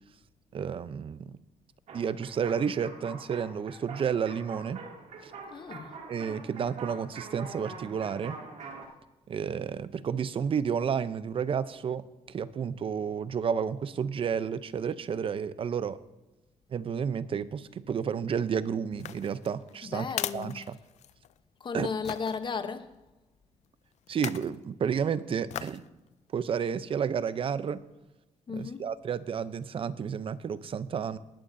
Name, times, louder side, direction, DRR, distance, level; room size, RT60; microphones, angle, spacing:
voice 1, 0.5-1.3 1.9-4.8 5.2-5.3 6.1-8.4 9.3-16.0 16.7-20.1 20.3-20.8 21.7-21.9 24.1-25.8 26.3-27.8 28.5-31.2, right 7 dB, 45° right, 0.6 m, -31 dB
sound 1, 1.9-8.9, right 4 dB, 70° right, 2.5 m, -44 dB
voice 2, 5.5-5.9 19.8-20.6 21.6-22.9 28.5-28.9, left 5 dB, 40° left, 0.9 m, -34 dB
sound 2, 18.9-21.4 22.0-22.4 24.1-24.5 25.5-25.9 26.3-26.4, left 11 dB, 65° left, 0.4 m, -38 dB
19.5 x 11.5 x 2.7 m
cardioid pair, 115°, 13 cm